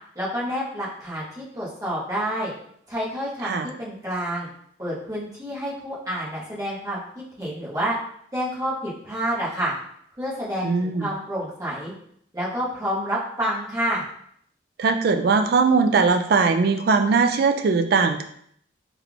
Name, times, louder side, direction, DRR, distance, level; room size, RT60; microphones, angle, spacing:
voice 1, 0.1-2.5 2.9-4.5 4.8-7.9 8.3-9.7 10.2-11.9 12.3-14.0, equal, 20° right, -8 dB, 1.1 m, -28 dB
voice 2, 10.6-11.1 14.8-18.2, right 4 dB, 55° right, 7 dB, 0.3 m, -20 dB
3.5 x 3.3 x 2.4 m, 0.67 s
head